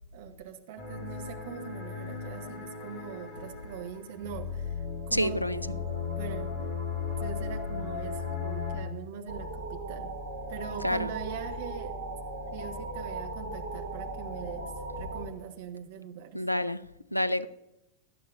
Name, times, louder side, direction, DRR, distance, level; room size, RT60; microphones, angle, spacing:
voice 1, 0.1-4.7 5.1-5.4 6.0-6.5 7.2-10.1 10.5-12.0 12.5-14.7 15.0-16.4, right 8 dB, 55° right, 1.4 m, -42 dB
sound 1, 0.8-8.8, left 5 dB, 30° left, 3.2 m, -36 dB
voice 2, 5.1-5.8 7.7-7.8 10.8-11.1 16.3-16.8 17.1-17.5, left 1 dB, 90° left, 0.5 m, -28 dB
sound 2, 9.3-15.3, right 2 dB, 75° right, 1.6 m, -38 dB
17.5 x 12.0 x 2.7 m
figure-of-eight pair, 90°, 0 cm